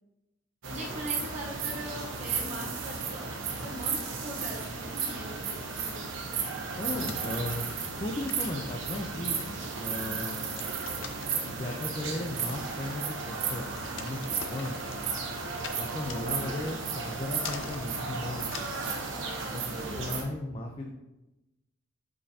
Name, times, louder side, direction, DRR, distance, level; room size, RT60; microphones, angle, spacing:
voice 1, 0.6-6.1 7.1-7.3 16.0-16.9 19.7-20.3, equal, 35° right, -3 dB, 1.1 m, -41 dB
sound 1, 0.6-20.2, right 5 dB, 70° right, 1.0 m, -34 dB
voice 2, 6.8-7.7 8.0-10.6 11.4-13.6 13.9-15.0 15.8-18.7 19.5-19.6 19.9-20.9, left 1 dB, 30° left, 1 dB, 0.5 m, -36 dB
sound 2, 7.0-19.0, left 6 dB, 75° left, 0.6 m, -46 dB
8.1 x 5.3 x 2.8 m, 1.0 s
head